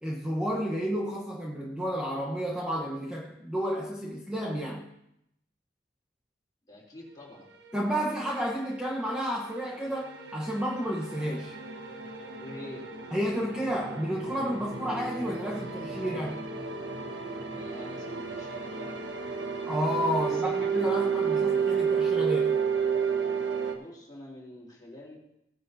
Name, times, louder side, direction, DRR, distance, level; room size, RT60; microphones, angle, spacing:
voice 1, 0.0-4.9 7.7-11.5 13.1-16.4 19.7-22.6, equal, 5° right, -5 dB, 1.1 m, -31 dB
voice 2, 6.7-7.5 12.4-12.9 17.6-19.1 20.2-21.0 23.4-25.2, left 1 dB, 25° left, -4 dB, 3.5 m, -47 dB
sound 1, 7.6-23.7, right 6 dB, 90° right, 1.3 m, -32 dB
17.0 x 9.7 x 2.8 m, 0.80 s
head